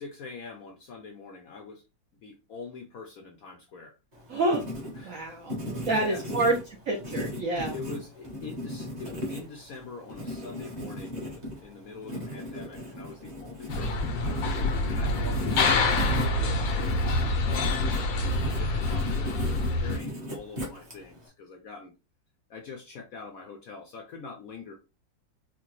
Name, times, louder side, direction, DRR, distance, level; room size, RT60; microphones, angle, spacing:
voice 1, 0.0-1.8 2.2-3.9 5.0-5.4 5.7-6.6 7.7-21.9 22.5-24.7, left 4 dB, 70° left, 3 dB, 0.8 m, -44 dB
Writing, 4.1-21.3, left 1 dB, 30° right, 0.9 m, -37 dB
voice 2, 4.3-5.6 5.9-6.6 6.9-7.8, right 2 dB, 65° right, 1 dB, 0.8 m, -28 dB
sound 1, 13.7-20.0, left 2 dB, 90° left, 1.5 m, -26 dB
4.7 x 2.2 x 3.0 m, 0.29 s
omnidirectional pair, 2.0 m